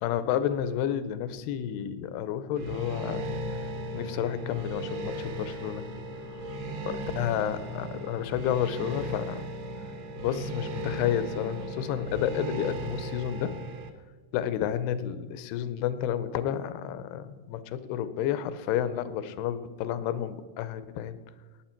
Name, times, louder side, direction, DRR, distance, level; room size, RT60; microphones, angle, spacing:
voice 1, 0.0-3.2 3.5-3.6 3.9-5.9 6.9-9.4 10.2-13.6 14.3-21.2, left 10 dB, 90° left, 13 dB, 2.8 m, -31 dB
sound 1, 2.6-13.9, right 1 dB, 60° right, 1.8 m, -36 dB
17.5 x 9.1 x 4.5 m, 1.5 s
omnidirectional pair, 4.5 m